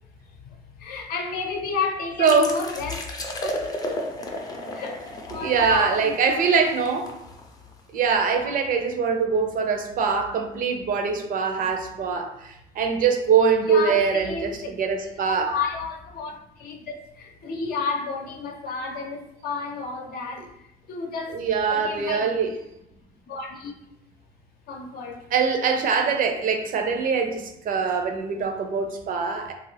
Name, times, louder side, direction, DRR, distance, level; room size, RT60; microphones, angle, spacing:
voice 1, 0.8-3.0 3.4-4.0 4.8-6.5 8.3-8.6 13.7-14.6 15.4-20.4 20.9-22.3 23.3-23.7 24.7-25.2, left 4 dB, 65° left, 2 dB, 0.6 m, -32 dB
voice 2, 2.2-2.5 5.3-7.1 7.9-12.3 12.8-15.5 21.3-22.5 25.3-29.5, right 5 dB, 55° right, 5 dB, 0.5 m, -23 dB
sound 1, 2.3-7.8, left 1 dB, 20° left, 0.5 m, -34 dB
3.0 x 2.4 x 3.3 m, 0.81 s
cardioid pair, 110°, 17 cm